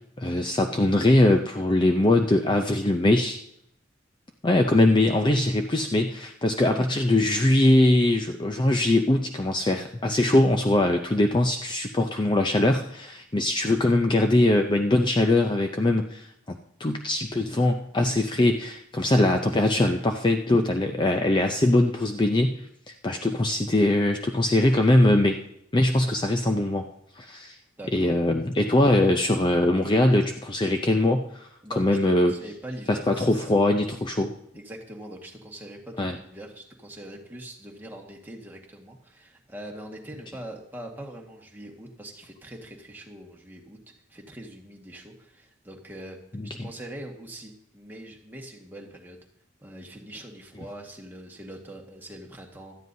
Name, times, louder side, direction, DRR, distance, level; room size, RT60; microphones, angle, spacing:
voice 1, 0.2-3.4 4.4-22.6 22.9-25.4 25.7-26.9 27.2-27.6 27.9-31.5 31.8-32.3 32.9-34.3 36.0-36.1, left 1 dB, 25° left, 5 dB, 0.5 m, -22 dB
voice 2, 27.8-28.1 31.6-33.5 34.1-34.2 34.5-43.8 44.1-46.2 46.4-49.2 49.6-52.8, right 1 dB, 10° right, 0 dB, 1.6 m, -42 dB
17.0 x 12.5 x 2.7 m, 0.74 s
head